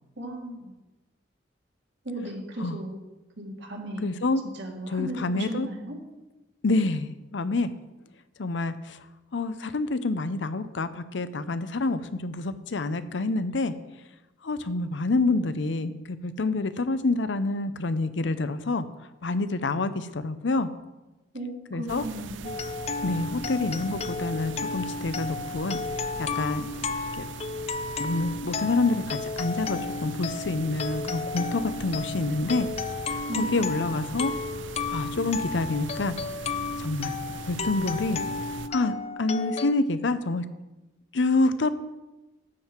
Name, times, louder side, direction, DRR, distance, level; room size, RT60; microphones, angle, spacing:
voice 1, 0.2-0.7 2.0-3.0 3.4-4.1 4.5-6.0 21.3-22.6 33.3-33.8, right 1 dB, 65° right, 0 dB, 2.1 m, -36 dB
voice 2, 4.0-4.4 4.9-5.7 6.6-7.7 8.4-9.0 9.3-13.7 14.4-18.8 19.2-20.7 21.7-22.0 23.0-25.8 26.2-26.7 27.2-27.3 28.0-32.7 33.1-34.3 34.9-36.1 36.8-37.1 37.5-38.2 38.7-40.4 41.1-41.7, left 3 dB, 75° left, 12 dB, 0.6 m, -27 dB
sound 1, 21.9-38.7, right 4 dB, 85° right, 0.5 m, -40 dB
sound 2, 22.4-39.7, left 4 dB, 35° left, 0.4 m, -33 dB
12.0 x 7.6 x 4.5 m, 1.1 s
head